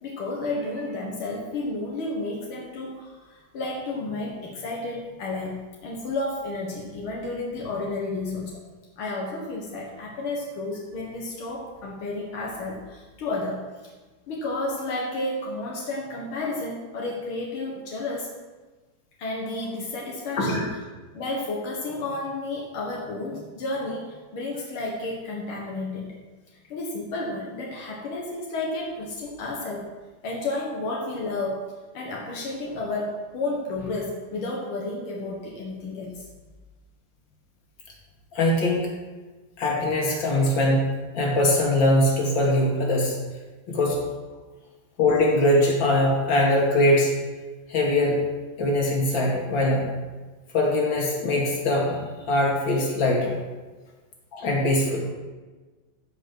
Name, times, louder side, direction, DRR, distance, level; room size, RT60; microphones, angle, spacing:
voice 1, 0.0-8.6 9.0-13.9 14.3-18.3 19.2-20.7 21.1-26.2 26.7-29.9 30.2-31.6 31.9-36.3, left 2 dB, 90° left, -2 dB, 2.4 m, -31 dB
voice 2, 20.4-20.7 38.3-38.9 39.6-40.9 41.1-43.2 43.7-44.0 45.0-47.1 47.7-48.2 48.6-49.9 50.5-53.4 54.3-55.0, left 1 dB, 65° left, -2 dB, 3.0 m, -22 dB
14.5 x 5.4 x 6.3 m, 1.3 s
omnidirectional pair, 2.2 m